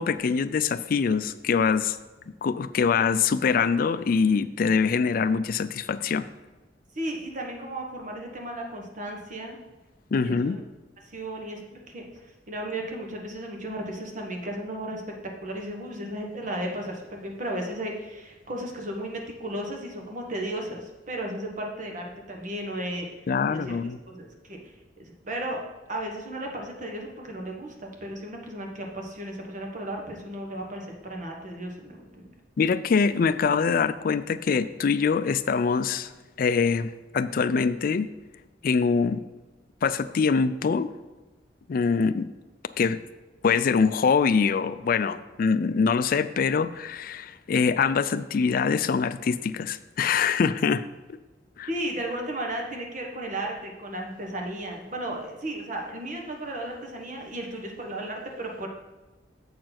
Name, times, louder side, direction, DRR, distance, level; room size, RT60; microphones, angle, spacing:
voice 1, 0.0-2.0 2.4-6.3 10.1-10.6 23.3-24.0 32.6-36.1 36.4-38.1 38.6-39.2 39.8-40.9 41.7-42.3 42.8-43.0 43.4-50.9 51.6-51.7, left 5 dB, 50° left, 14 dB, 0.3 m, -24 dB
voice 2, 6.9-9.6 10.2-10.6 11.0-15.0 15.4-23.1 23.5-23.7 24.1-24.6 25.0-25.6 25.9-32.3 51.7-58.7, right 1 dB, 45° right, 1 dB, 1.3 m, -34 dB
7.4 x 4.6 x 5.9 m, 1.2 s
head